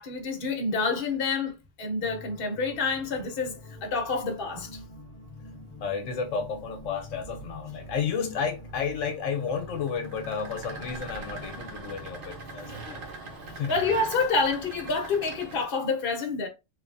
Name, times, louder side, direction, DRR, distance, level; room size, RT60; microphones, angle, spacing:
voice 1, 0.0-4.8 12.8-13.0 13.7-16.5, left 4 dB, 50° left, 0.9 m, -28 dB
sound 1, 2.0-13.6, left 2 dB, 5° right, 1.1 m, -46 dB
voice 2, 5.8-13.0 13.6-13.8, left 6 dB, 85° left, 1.0 m, -32 dB
sound 2, 6.0-15.7, right 3 dB, 55° right, 0.7 m, -43 dB
3.2 x 2.3 x 2.5 m
omnidirectional pair, 1.3 m